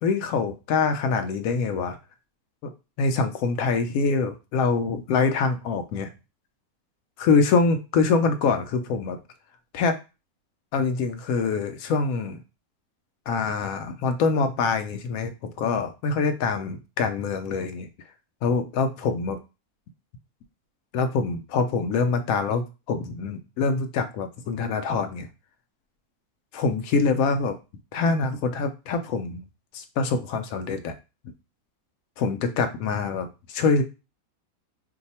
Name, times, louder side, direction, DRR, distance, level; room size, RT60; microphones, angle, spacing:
voice 1, 0.0-2.0 2.6-2.7 3.0-6.1 7.2-9.2 9.7-10.0 10.7-12.4 13.3-15.3 15.6-17.9 18.4-19.4 20.9-25.3 26.5-27.6 27.9-29.4 29.7-30.9 32.2-33.8, left 4 dB, 70° left, 8 dB, 0.9 m, -25 dB
2.7 x 2.2 x 4.1 m, 0.29 s
omnidirectional pair, 1.6 m